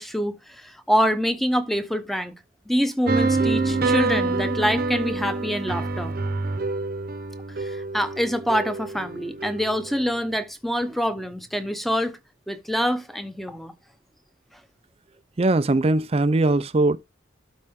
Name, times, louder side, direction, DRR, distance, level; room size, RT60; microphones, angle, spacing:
voice 1, 0.0-2.3 2.7-6.1 7.6-12.2 12.5-13.7, equal, ahead, 0.8 m, -25 dB
sound 1, 3.1-10.0, right 3 dB, 55° right, 1.0 m, -26 dB
voice 2, 15.4-17.0, right 2 dB, 30° right, 0.5 m, -20 dB
12.5 x 4.3 x 3.6 m
head